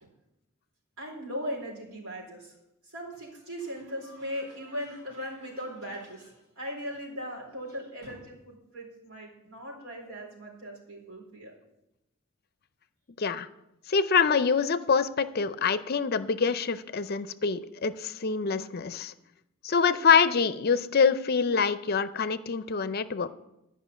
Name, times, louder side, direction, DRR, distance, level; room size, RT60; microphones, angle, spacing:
voice 1, 1.0-2.5 2.9-11.5, equal, 85° right, -1 dB, 3.9 m, -38 dB
voice 2, 13.9-19.1 19.6-23.3, left 5 dB, 45° left, 13 dB, 0.5 m, -25 dB
12.0 x 5.5 x 8.3 m, 0.89 s
head